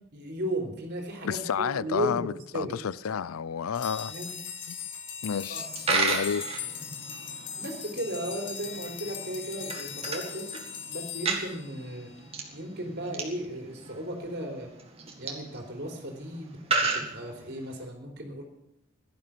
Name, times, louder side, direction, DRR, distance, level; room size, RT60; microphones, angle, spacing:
voice 1, 0.1-2.8 4.1-4.4 5.5-5.6 7.6-10.6 10.9-12.1 12.5-14.7 15.2-18.4, right 1 dB, 50° right, 3.5 m, -35 dB
voice 2, 1.2-4.1 5.2-6.6, left 7 dB, 90° left, 0.5 m, -31 dB
sound 1, 3.7-12.3, left 7 dB, 60° left, 1.7 m, -40 dB
Coin (dropping), 5.6-17.8, right 4 dB, 30° right, 2.0 m, -34 dB
16.5 x 12.0 x 5.9 m
head